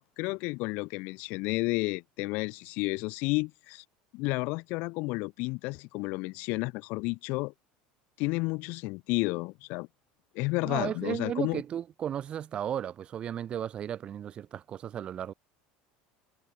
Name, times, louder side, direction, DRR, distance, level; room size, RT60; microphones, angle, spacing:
voice 1, 0.0-3.8 4.1-7.5 8.2-9.9 10.3-11.6, left 25 dB, 60° left, 0.4 m, -31 dB
voice 2, 10.6-15.3, right 9 dB, 35° right, 0.6 m, -34 dB
cardioid pair, 135°, 3 cm